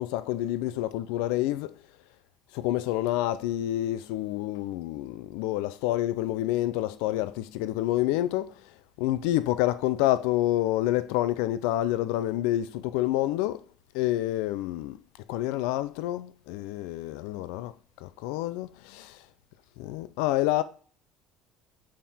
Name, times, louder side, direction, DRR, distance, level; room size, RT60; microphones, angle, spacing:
voice 1, 0.0-1.7 2.5-8.5 9.0-13.6 13.9-15.0 15.3-17.7 18.0-19.2 19.8-20.6, left 14 dB, 85° left, 0.5 m, -28 dB
7.4 x 4.3 x 3.6 m
cardioid pair, 145°, 0 cm